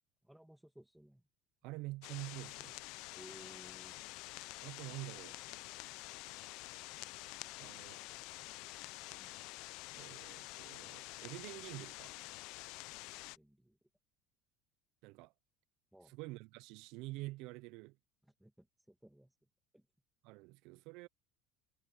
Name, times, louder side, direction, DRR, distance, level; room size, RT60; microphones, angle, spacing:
voice 1, 0.2-1.2 3.1-4.0 9.0-9.4 13.3-13.8 15.9-16.2 18.4-19.3 19.7-19.9, right 1 dB, ahead, 1.4 m, -59 dB
voice 2, 1.6-2.8 4.6-5.4 7.6-8.0 10.0-12.1 15.0-15.3 16.0-18.0 20.2-21.1, right 21 dB, 55° right, 0.3 m, -47 dB
sound 1, 2.0-13.4, left 22 dB, 55° left, 0.3 m, -48 dB
cardioid pair, 170°, 0 cm